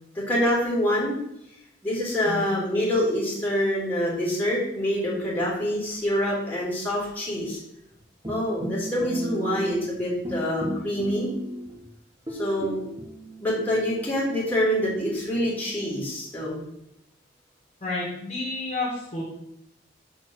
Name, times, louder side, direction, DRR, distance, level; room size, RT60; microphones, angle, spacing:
voice 1, 0.1-1.2 1.8-7.6 8.3-11.3 12.4-12.8 13.4-16.6, equal, 10° left, -7 dB, 2.9 m, -26 dB
sound 1, 8.2-10.0 10.2-11.8 12.3-14.9, right 1 dB, 25° right, 1.3 m, -34 dB
voice 2, 17.8-19.2, left 2 dB, 40° left, -5 dB, 2.0 m, -30 dB
6.4 x 4.4 x 6.1 m, 0.80 s
head